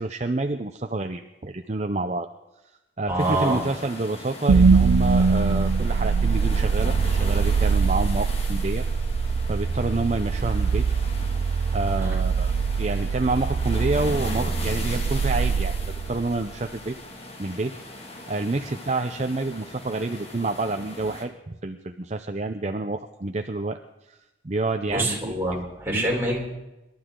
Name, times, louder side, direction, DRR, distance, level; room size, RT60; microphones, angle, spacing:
voice 1, 0.0-2.3 3.0-8.8 9.5-10.8 11.7-12.5 12.8-15.7 16.1-16.9 17.4-17.7 18.3-23.8 24.1-24.2 24.4-25.3 25.9-26.0, right 2 dB, 35° right, 6 dB, 0.6 m, -28 dB
voice 2, 3.1-3.7 12.0-12.2 24.9-26.4, right 1 dB, 10° right, -3 dB, 3.8 m, -25 dB
sound 1, 3.2-21.2, left 1 dB, 35° left, 2.1 m, -39 dB
sound 2, 4.5-16.6, right 5 dB, 90° right, 0.5 m, -23 dB
26.5 x 12.0 x 3.8 m, 0.99 s
head